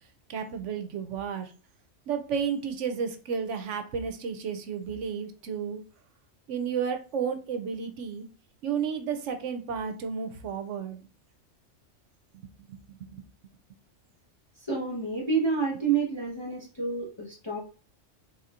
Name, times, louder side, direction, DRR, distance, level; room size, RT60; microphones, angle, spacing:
voice 1, 0.3-1.5 2.1-5.8 6.5-8.3 8.6-11.0 12.3-13.2, right 6 dB, 75° right, 8 dB, 1.0 m, -32 dB
voice 2, 14.6-17.6, right 5 dB, 25° left, -4 dB, 1.1 m, -29 dB
4.2 x 3.9 x 2.5 m, 0.37 s
omnidirectional pair, 1.3 m